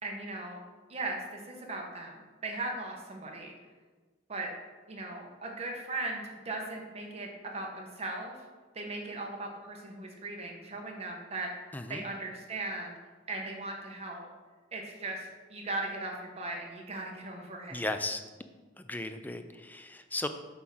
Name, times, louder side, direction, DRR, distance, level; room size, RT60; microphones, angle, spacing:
voice 1, 0.0-0.6 0.9-3.5 4.3-4.5 4.9-8.3 8.7-11.5 11.9-13.0 13.3-14.3 14.7-17.8, right 2 dB, 35° right, 0 dB, 1.2 m, -38 dB
voice 2, 11.7-12.0 17.7-18.2 18.8-20.3, left 2 dB, 10° left, 8 dB, 0.4 m, -36 dB
7.8 x 3.7 x 6.0 m, 1.3 s
head